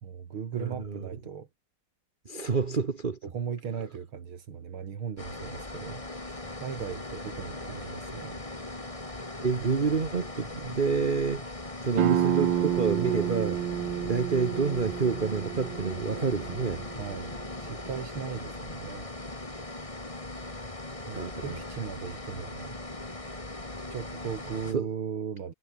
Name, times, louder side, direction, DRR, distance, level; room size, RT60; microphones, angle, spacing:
voice 1, 0.0-1.5 3.2-8.4 17.0-17.3 17.6-19.1 21.1-22.8 23.9-25.5, right 7 dB, 85° right, 3.0 m, -38 dB
voice 2, 0.5-1.1 2.2-3.2 9.4-11.4 11.8-13.6 14.0-16.9 21.1-21.6 24.7-24.9, right 5 dB, 30° right, 1.1 m, -28 dB
sound 1, 5.2-24.7, left 2 dB, 15° left, 2.6 m, -39 dB
sound 2, 12.0-17.4, right 10 dB, 70° right, 1.7 m, -30 dB
omnidirectional pair, 2.2 m